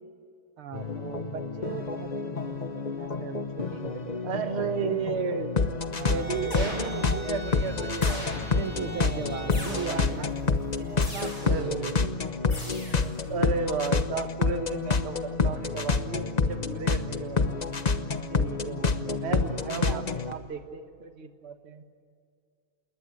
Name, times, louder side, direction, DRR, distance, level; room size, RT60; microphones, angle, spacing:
voice 1, 0.6-4.2 5.9-6.8 8.5-10.3 10.7-12.1 13.6-13.7 17.0-17.6 18.3-19.2 19.6-20.5, right 7 dB, 90° right, 9 dB, 2.3 m, -39 dB
sound 1, 0.7-20.3, left 4 dB, 50° left, 0.5 m, -28 dB
voice 2, 4.2-5.5 5.9-8.3 8.9-9.5 9.9-10.6 11.5-12.0 12.7-17.5 18.4-18.8 19.2-21.8, right 5 dB, 35° right, 7 dB, 1.5 m, -34 dB
sound 2, 6.1-11.1, left 2 dB, 10° left, 1.3 m, -40 dB
sound 3, 6.5-7.2 8.0-8.7 9.5-10.2 11.0-11.7 12.5-13.2, left 1 dB, 65° left, 7.9 m, -39 dB
28.0 x 21.0 x 9.7 m, 2.3 s
omnidirectional pair, 2.3 m